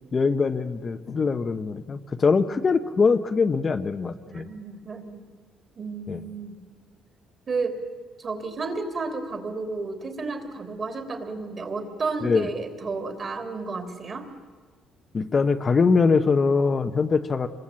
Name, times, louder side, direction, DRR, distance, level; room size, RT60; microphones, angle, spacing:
voice 1, 0.1-4.4 6.1-6.2 12.2-12.5 15.1-17.5, left 4 dB, 25° left, 7 dB, 0.8 m, -22 dB
voice 2, 4.3-5.2 5.8-6.5 7.5-7.8 8.2-14.3, right 3 dB, 35° right, 6 dB, 3.2 m, -32 dB
28.0 x 22.5 x 8.7 m, 1.5 s
cardioid pair, 155°, 0 cm